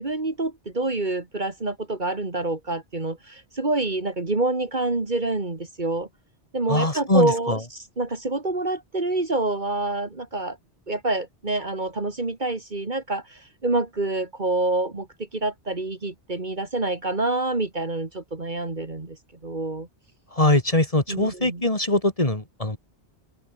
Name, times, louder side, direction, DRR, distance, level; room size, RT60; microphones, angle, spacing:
voice 1, 0.0-6.1 6.5-10.6 10.9-19.2 19.4-19.9 21.1-21.6, right 2 dB, 45° right, 2.3 m, -27 dB
voice 2, 6.7-7.6 20.3-22.8, left 1 dB, 30° left, 2.9 m, -22 dB
open air
omnidirectional pair, 1.2 m